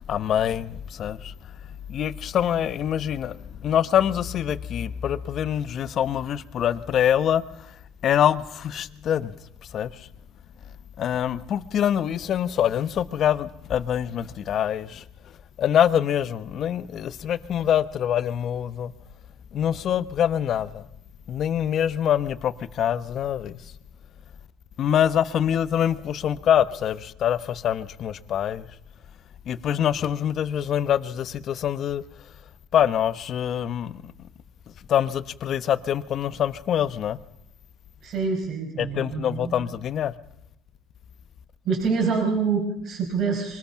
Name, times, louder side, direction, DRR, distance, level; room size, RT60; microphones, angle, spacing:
voice 1, 0.1-1.3 1.9-7.4 8.0-9.3 9.7-10.1 11.0-15.0 15.6-18.9 19.5-20.9 21.3-23.5 24.8-28.7 29.5-32.0 32.7-34.0 34.9-37.2 38.8-40.1, left 9 dB, 50° left, 1.0 m, -25 dB
voice 2, 38.0-39.6 41.7-43.6, right 5 dB, 60° right, 5.5 m, -26 dB
24.5 x 19.5 x 5.9 m
cardioid pair, 100°, 0 cm